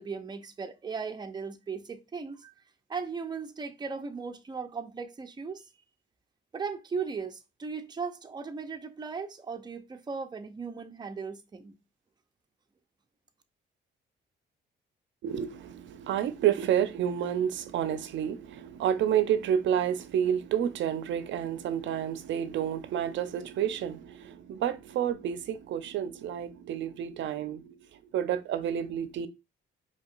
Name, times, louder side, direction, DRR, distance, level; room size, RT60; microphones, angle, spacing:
voice 1, 0.0-2.5 2.9-5.6 6.5-11.8, right 5 dB, 20° right, 0.6 m, -37 dB
voice 2, 15.2-27.8 28.1-29.3, right 9 dB, 70° right, 0.6 m, -29 dB
4.7 x 2.9 x 2.5 m
cardioid pair, 90°, 20 cm